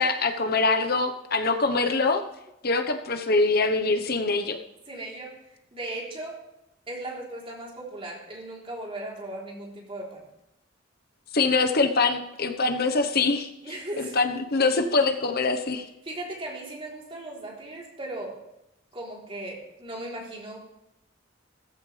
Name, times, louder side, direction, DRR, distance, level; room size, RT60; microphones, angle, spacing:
voice 1, 0.0-2.2 2.6-4.6 11.3-13.5 14.0-15.9, left 3 dB, 55° left, 6 dB, 1.2 m, -24 dB
voice 2, 4.9-5.4 5.7-6.4 6.9-10.2 13.6-14.2 16.0-18.4 18.9-20.7, right 2 dB, 30° right, -2 dB, 3.8 m, -37 dB
15.5 x 14.5 x 3.4 m, 0.86 s
head